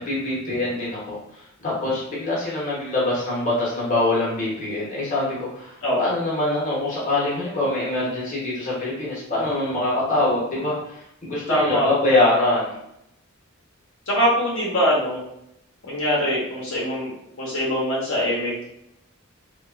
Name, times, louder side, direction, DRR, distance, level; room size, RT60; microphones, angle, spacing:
voice 1, 0.0-12.8, left 2 dB, 35° left, -6 dB, 0.8 m, -24 dB
voice 2, 11.5-11.9 14.1-15.2 15.8-17.1 17.4-18.5, equal, 60° left, -6 dB, 0.7 m, -22 dB
2.8 x 2.3 x 2.3 m, 0.80 s
head